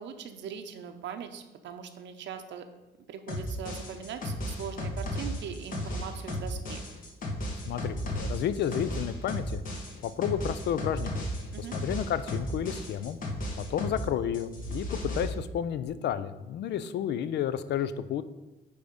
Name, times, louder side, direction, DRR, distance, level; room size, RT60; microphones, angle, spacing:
voice 1, 0.0-2.7 3.0-6.8 11.5-11.8 16.7-16.9, right 7 dB, 80° right, 7 dB, 0.7 m, -41 dB
sound 1, 3.3-14.1 14.3-15.3, equal, 45° left, 1.3 m, -34 dB
voice 2, 7.7-9.6 10.0-11.3 11.6-13.2 13.6-18.2, left 9 dB, 70° left, 14 dB, 0.4 m, -31 dB
9.3 x 3.5 x 5.1 m, 1.0 s
cardioid pair, 175°, 19 cm